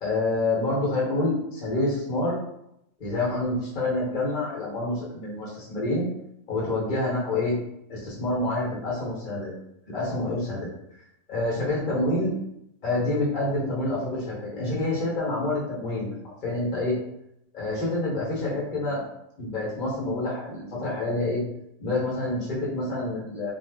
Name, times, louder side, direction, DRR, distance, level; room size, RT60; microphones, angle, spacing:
voice 1, 0.0-2.4 3.0-6.0 6.5-7.6 7.9-9.5 9.9-10.7 11.3-12.3 12.8-16.1 16.4-17.0 17.5-19.0 19.4-21.4 21.8-23.5, left 2 dB, 35° left, -5 dB, 1.1 m, -27 dB
2.6 x 2.3 x 3.4 m, 0.79 s
omnidirectional pair, 1.5 m